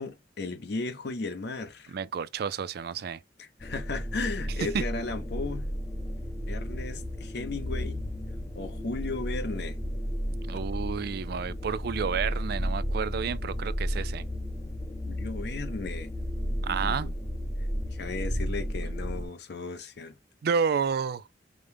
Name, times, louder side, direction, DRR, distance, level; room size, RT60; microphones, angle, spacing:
voice 1, 0.0-2.0 3.4-5.8 6.5-8.0 8.5-9.8 15.1-16.1 16.5-17.1 17.9-20.2, left 3 dB, 65° left, 0.7 m, -35 dB
voice 2, 1.9-3.2 4.7-4.8 10.3-14.3 16.6-17.1 20.4-21.2, right 6 dB, 60° right, 0.4 m, -30 dB
sound 1, 3.6-19.2, equal, 15° left, 0.6 m, -33 dB
5.0 x 2.1 x 3.4 m
head